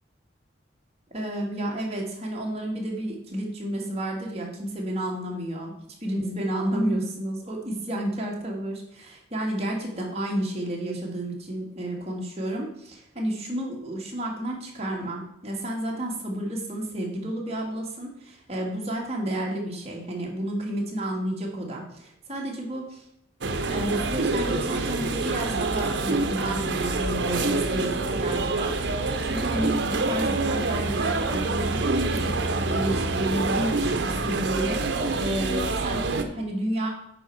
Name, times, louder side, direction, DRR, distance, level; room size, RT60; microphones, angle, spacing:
voice 1, 1.1-5.7 6.0-23.0 23.7-36.9, right 1 dB, 35° right, -2 dB, 2.0 m, -31 dB
sound 1, 23.4-36.2, right 3 dB, 70° right, 0.8 m, -26 dB
8.9 x 5.7 x 4.7 m, 0.74 s
head